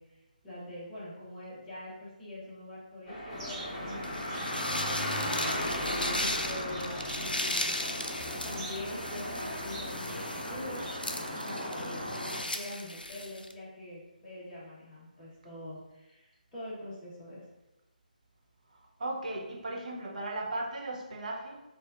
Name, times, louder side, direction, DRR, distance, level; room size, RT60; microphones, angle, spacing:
voice 1, 0.0-7.7 8.4-10.2 10.5-10.8 11.4-17.4, left 1 dB, 15° left, -11 dB, 1.1 m, -44 dB
sound 1, 3.1-11.3, equal, 35° left, 0.9 m, -37 dB
sound 2, 3.3-12.4, equal, 25° right, 0.9 m, -40 dB
sound 3, 4.0-13.5, left 1 dB, 90° left, 0.4 m, -37 dB
voice 2, 19.0-21.6, right 1 dB, 55° right, -1 dB, 0.8 m, -36 dB
4.2 x 2.5 x 2.5 m, 0.97 s
figure-of-eight pair, 145°, 5 cm